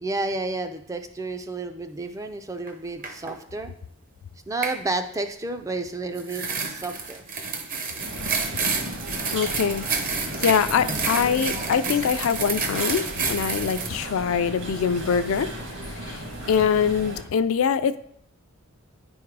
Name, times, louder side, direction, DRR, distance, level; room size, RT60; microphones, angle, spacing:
voice 1, 0.0-3.7 4.5-7.3, right 2 dB, 15° right, 7 dB, 0.4 m, -31 dB
sound 1, 2.7-2.8 3.0-3.4 4.6-4.8 6.1-13.9, right 5 dB, 40° right, 0.7 m, -29 dB
sound 2, 8.0-17.2, equal, 55° right, 1.5 m, -35 dB
voice 2, 9.3-9.9 10.4-15.5 15.8-18.0, left 7 dB, 70° left, 12 dB, 0.4 m, -24 dB
9.7 x 3.6 x 4.7 m, 0.71 s
head